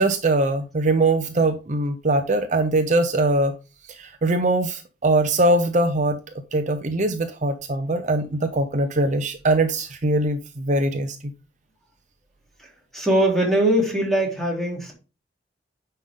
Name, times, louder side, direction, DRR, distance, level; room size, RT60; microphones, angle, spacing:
voice 1, 0.0-3.5 4.0-6.2 6.5-11.2, right 2 dB, 45° right, 0.8 m, -22 dB
voice 2, 12.9-14.9, right 1 dB, ahead, 3.3 m, -21 dB
9.8 x 5.7 x 3.7 m
head